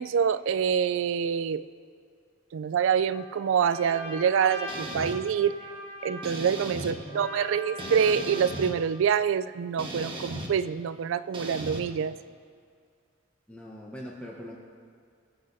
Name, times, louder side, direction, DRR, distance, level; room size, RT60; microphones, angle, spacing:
voice 1, 0.0-1.6 2.5-5.6 6.0-12.2, right 7 dB, 65° right, 15 dB, 0.3 m, -26 dB
Trumpet, 3.1-8.7, equal, 65° left, 3.3 m, -41 dB
sound 1, 4.7-5.2 6.2-6.9 7.8-8.7 9.8-10.5 11.3-11.8, right 1 dB, 25° right, 1.3 m, -36 dB
voice 2, 6.8-7.3 13.5-14.6, equal, 5° left, -3 dB, 0.9 m, -42 dB
23.5 x 7.8 x 2.7 m, 2.2 s
head